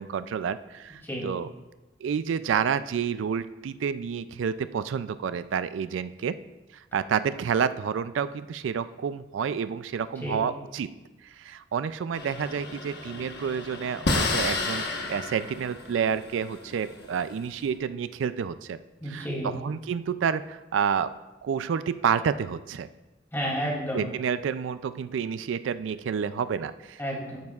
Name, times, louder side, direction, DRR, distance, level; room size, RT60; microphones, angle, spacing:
voice 1, 0.0-1.5 2.0-6.4 6.9-10.9 11.4-14.8 15.1-18.8 19.1-21.1 21.4-22.9 23.9-27.0, right 7 dB, 85° right, 13 dB, 0.3 m, -29 dB
sound 1, 12.1-17.6, left 2 dB, 60° left, 1.2 m, -32 dB
voice 2, 19.0-19.5 23.3-24.1 27.0-27.4, equal, 15° left, -3 dB, 2.6 m, -31 dB
12.0 x 9.4 x 2.4 m, 1.1 s
head